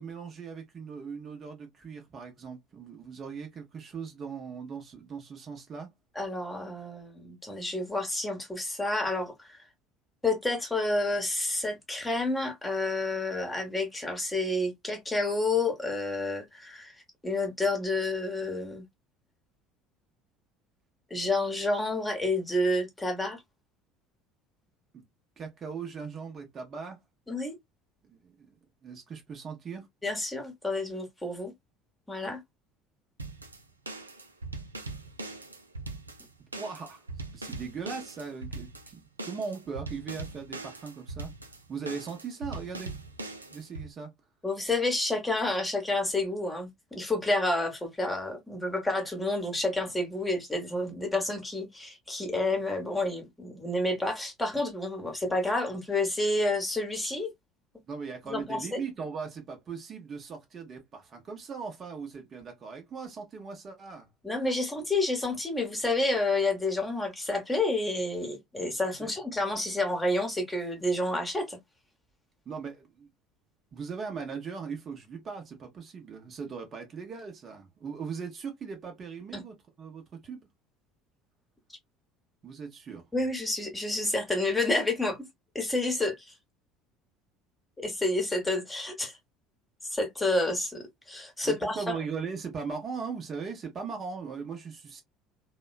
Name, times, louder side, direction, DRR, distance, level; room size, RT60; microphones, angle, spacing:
voice 1, 0.0-5.9 24.9-25.0 25.4-27.0 28.1-28.6 28.8-29.9 33.9-34.0 36.6-37.0 37.3-41.3 41.7-42.9 43.5-44.1 57.9-64.1 69.0-69.1 72.5-73.1 73.7-80.4 82.4-83.1 91.4-95.0, right 5 dB, 35° right, 0.8 m, -39 dB
voice 2, 6.1-9.6 10.2-16.9 17.2-18.8 21.1-23.4 27.3-27.5 30.0-31.5 32.1-32.4 44.4-57.3 58.3-58.8 64.2-71.6 79.3-79.4 83.1-85.3 85.5-86.3 87.8-89.2 89.8-91.8, left 2 dB, 10° left, 1.0 m, -29 dB
sound 1, 33.2-43.9, right 2 dB, 85° right, 0.4 m, -41 dB
2.9 x 2.2 x 2.2 m
figure-of-eight pair, 65°, 0 cm